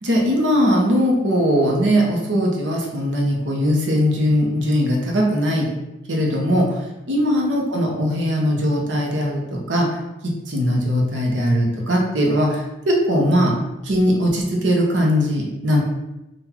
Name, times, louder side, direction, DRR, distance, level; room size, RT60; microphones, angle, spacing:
voice 1, 0.0-5.7 6.1-10.0 10.2-13.6 13.8-15.8, equal, 90° right, -1 dB, 0.9 m, -20 dB
3.9 x 2.5 x 4.4 m, 0.97 s
head